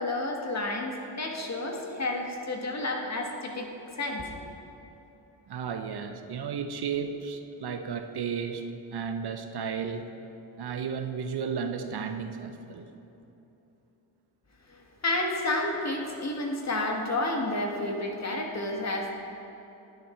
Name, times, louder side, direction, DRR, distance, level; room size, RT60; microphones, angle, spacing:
voice 1, 0.0-3.7 4.0-4.3 14.7-14.8 15.0-19.1, left 2 dB, 40° left, 1 dB, 1.7 m, -30 dB
voice 2, 5.5-8.6 8.9-10.1 10.6-12.9, right 6 dB, 65° right, 7 dB, 0.8 m, -33 dB
10.5 x 10.0 x 4.5 m, 3.0 s
cardioid pair, 75°, 42 cm